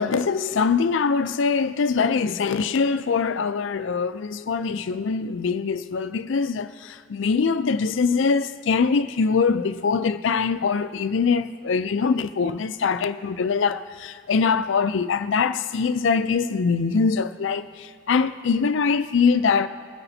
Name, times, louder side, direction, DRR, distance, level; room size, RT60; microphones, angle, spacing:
voice 1, 0.0-19.7, left 5 dB, 65° left, 0.4 m, -23 dB
21.0 x 9.9 x 2.7 m
head